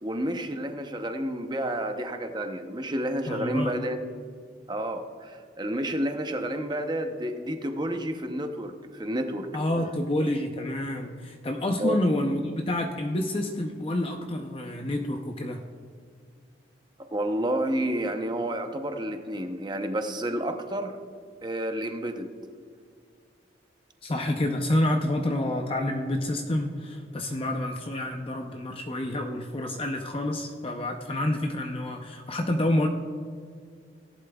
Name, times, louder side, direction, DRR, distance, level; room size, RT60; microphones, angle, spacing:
voice 1, 0.0-4.0 4.7-9.5 11.8-12.0 17.1-20.9 21.4-22.3, right 1 dB, 25° right, 5 dB, 0.8 m, -30 dB
voice 2, 3.3-3.8 9.5-15.6 24.0-32.9, left 1 dB, 30° left, 3 dB, 0.6 m, -28 dB
17.5 x 11.0 x 2.3 m, 2.1 s
head